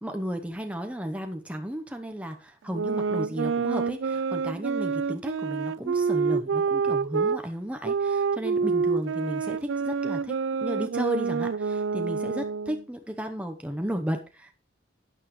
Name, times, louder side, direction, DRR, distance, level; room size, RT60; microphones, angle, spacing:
voice 1, 0.0-14.5, equal, 5° right, 5 dB, 0.8 m, -34 dB
sound 1, 2.7-7.4 7.8-12.8, right 5 dB, 75° right, 0.4 m, -27 dB
12.0 x 9.1 x 3.1 m, 0.32 s
head